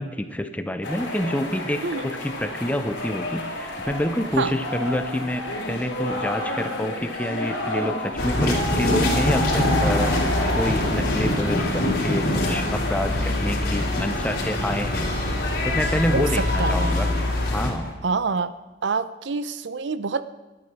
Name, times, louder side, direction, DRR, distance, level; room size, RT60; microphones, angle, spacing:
voice 1, 0.0-10.1 10.5-15.1 15.6-17.1 17.5-17.9, left 1 dB, 10° left, 9 dB, 0.7 m, -28 dB
sound 1, 0.8-17.9, left 1 dB, 75° left, 3.2 m, -31 dB
sound 2, 8.2-17.7, left 1 dB, 50° left, 3.1 m, -24 dB
voice 2, 16.1-17.0 18.0-18.5 18.8-20.2, right 4 dB, 70° right, 13 dB, 0.6 m, -26 dB
12.0 x 9.5 x 6.0 m, 1.2 s
head